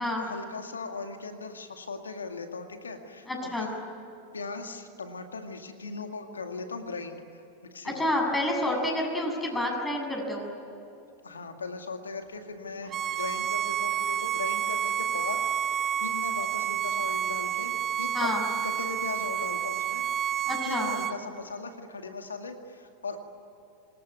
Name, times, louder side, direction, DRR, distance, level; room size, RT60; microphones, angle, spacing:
voice 1, 0.0-3.8 4.3-7.2 7.7-8.1 11.2-18.3 18.6-20.3 20.6-23.2, left 4 dB, 85° left, 6 dB, 2.1 m, -38 dB
voice 2, 3.3-3.7 7.8-10.5 18.1-18.4 20.5-20.9, left 1 dB, 10° left, 1 dB, 7.4 m, -29 dB
Bowed string instrument, 12.9-21.2, right 9 dB, 35° right, 1.0 m, -29 dB
25.5 x 20.5 x 9.6 m, 2.8 s
hypercardioid pair, 90°, 0 cm